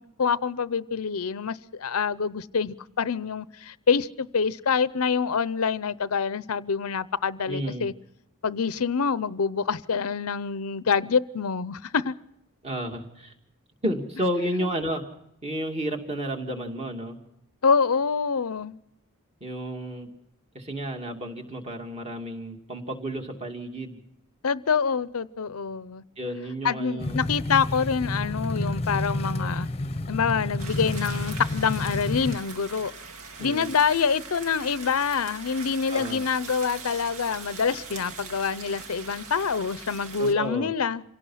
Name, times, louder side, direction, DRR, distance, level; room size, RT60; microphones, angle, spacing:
voice 1, 0.0-7.9 8.4-12.2 17.6-18.8 24.4-26.0 26.6-29.7 30.1-32.9 33.4-41.0, left 6 dB, 80° left, 0.7 m, -26 dB
voice 2, 7.5-7.9 12.6-13.3 13.8-15.0 15.4-17.2 19.4-20.1 20.5-24.0 26.2-27.2 33.4-33.7 35.9-36.2 40.2-40.7, equal, 30° right, 2.6 m, -31 dB
sound 1, 27.0-32.4, left 2 dB, 30° left, 0.9 m, -30 dB
sound 2, 30.6-40.3, right 4 dB, 80° right, 2.1 m, -41 dB
27.0 x 17.5 x 5.7 m
head